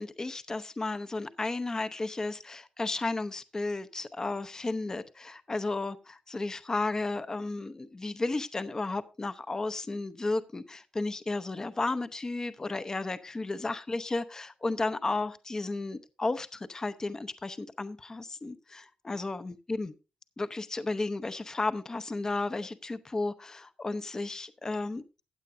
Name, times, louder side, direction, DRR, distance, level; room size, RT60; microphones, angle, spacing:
voice 1, 0.0-19.9 20.4-25.0, left 3 dB, 25° left, 12 dB, 0.7 m, -33 dB
15.5 x 9.0 x 2.6 m, 0.29 s
cardioid pair, 95°, 2 cm